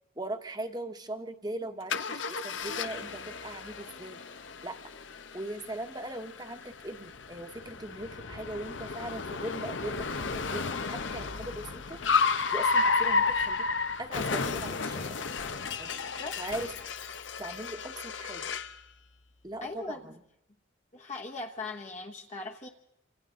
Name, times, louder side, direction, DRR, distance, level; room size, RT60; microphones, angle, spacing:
voice 1, 0.2-4.2 4.6-4.8 5.3-12.0 12.5-13.7 14.0-15.2 15.8-15.9 16.3-16.7 17.4-18.5 19.4-20.1, right 1 dB, 20° right, 7 dB, 1.3 m, -39 dB
Car, 1.9-18.8, left 4 dB, 80° left, 0.9 m, -32 dB
voice 2, 19.6-20.0 20.9-22.7, left 3 dB, 40° left, 1 dB, 1.1 m, -39 dB
28.0 x 26.5 x 3.8 m, 0.82 s
head